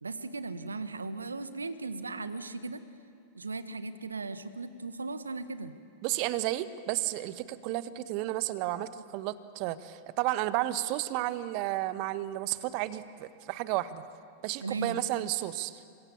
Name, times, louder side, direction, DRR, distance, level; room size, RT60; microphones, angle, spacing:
voice 1, 0.0-2.8 3.3-5.7 14.6-15.0, right 3 dB, 75° right, 12 dB, 1.6 m, -37 dB
voice 2, 6.0-14.0 14.4-15.8, right 15 dB, 45° right, 14 dB, 1.3 m, -32 dB
29.0 x 25.5 x 7.3 m, 2.3 s
figure-of-eight pair, 90°, 0 cm